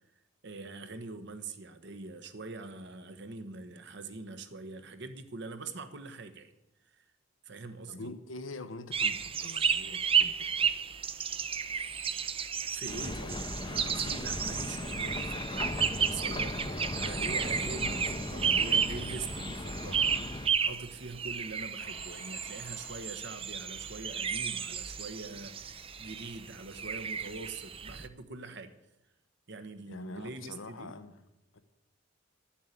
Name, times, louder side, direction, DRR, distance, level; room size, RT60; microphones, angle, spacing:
voice 1, 0.4-6.5 6.9-7.0 7.4-8.1 12.7-15.7 16.0-20.1 20.6-28.7 29.5-31.0, right 3 dB, 65° right, 1.3 m, -43 dB
voice 2, 7.9-10.7 17.2-17.3 29.9-31.2 31.5-31.6, left 2 dB, 90° left, 1.0 m, -44 dB
sound 1, 8.9-28.1, right 7 dB, 30° right, 0.6 m, -33 dB
sound 2, 12.9-20.5, left 2 dB, 25° left, 0.7 m, -38 dB
sound 3, 15.4-16.1 17.3-18.2 19.4-20.6 21.8-23.5, left 5 dB, 40° left, 1.0 m, -55 dB
12.0 x 7.4 x 8.6 m
head